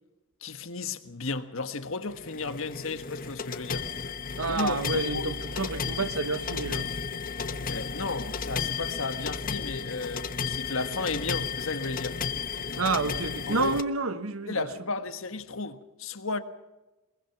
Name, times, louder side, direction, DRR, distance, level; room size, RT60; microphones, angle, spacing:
voice 1, 0.4-3.9 4.5-5.3 7.7-12.2 13.5-13.8 14.5-16.4, left 3 dB, 65° left, 1.5 m, -34 dB
sound 1, 2.1-13.8, left 5 dB, 40° left, 1.1 m, -33 dB
voice 2, 4.4-6.9 12.8-14.7, right 3 dB, 90° right, 1.5 m, -29 dB
23.5 x 22.0 x 6.0 m
head